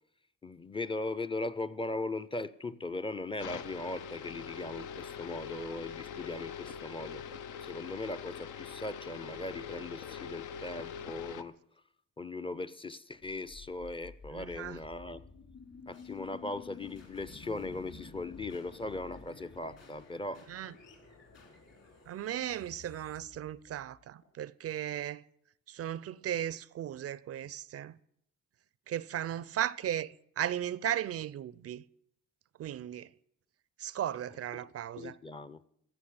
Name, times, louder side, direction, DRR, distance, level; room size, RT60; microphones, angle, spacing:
voice 1, 0.4-7.2 7.6-11.5 12.2-15.2 15.9-20.5 27.4-27.5 34.5-34.7 35.0-35.6, left 2 dB, 20° left, 0.5 m, -39 dB
sound 1, 3.4-11.4, left 7 dB, 80° left, 0.8 m, -43 dB
sound 2, 13.2-24.3, left 5 dB, 55° left, 4.3 m, -52 dB
voice 2, 14.3-14.8 20.5-20.7 22.1-25.2 25.7-28.0 28.9-31.8 32.6-33.1 33.8-35.2, right 11 dB, 50° right, 0.5 m, -36 dB
15.0 x 5.7 x 9.5 m
cardioid pair, 90°, 30 cm